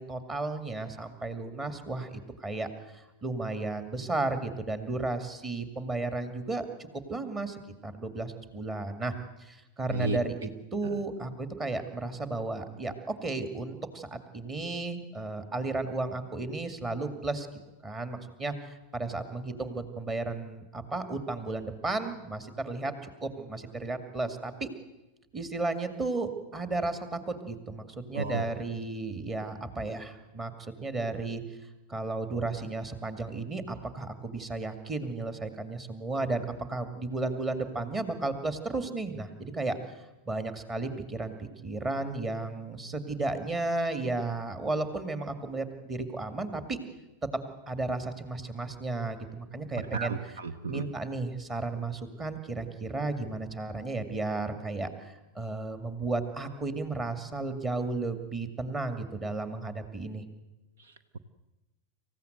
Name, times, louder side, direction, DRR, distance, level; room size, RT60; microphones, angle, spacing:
voice 1, 0.0-9.1 9.4-17.5 17.8-22.9 23.2-24.7 25.3-31.4 31.9-39.8 40.3-46.8 47.7-50.2 50.7-60.2, right 3 dB, 20° right, 9 dB, 2.3 m, -34 dB
voice 2, 28.1-28.5 49.9-50.9 60.8-60.9, right 3 dB, 65° right, 12 dB, 0.9 m, -32 dB
26.5 x 15.5 x 7.9 m, 1.0 s
figure-of-eight pair, 90°, 0 cm